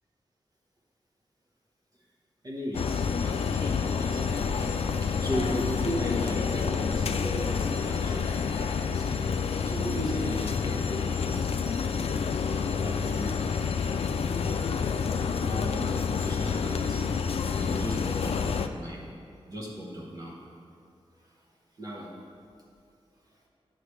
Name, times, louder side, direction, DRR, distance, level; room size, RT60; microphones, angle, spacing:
voice 1, 2.4-9.3 9.6-11.6 12.4-13.3 15.4-17.3 17.5-19.0 19.5-20.3 21.8-22.2, equal, 35° right, -4 dB, 1.0 m, -37 dB
sound 1, 2.7-18.7, left 6 dB, 75° left, 0.4 m, -28 dB
9.8 x 5.7 x 3.2 m, 2.4 s
wide cardioid pair, 130°, 10 cm